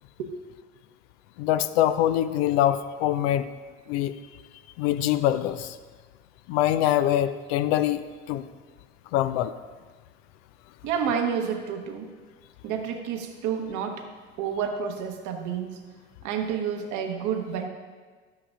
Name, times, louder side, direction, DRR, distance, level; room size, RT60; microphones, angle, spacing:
voice 1, 1.4-3.5 3.9-4.1 4.8-5.8 6.5-8.5 9.1-9.5, left 12 dB, 55° left, 12 dB, 0.5 m, -24 dB
voice 2, 10.8-12.1 12.6-14.1 14.4-15.8 16.2-17.7, right 7 dB, 50° right, 5 dB, 1.1 m, -29 dB
12.0 x 8.6 x 2.5 m, 1.4 s
figure-of-eight pair, 65°, 38 cm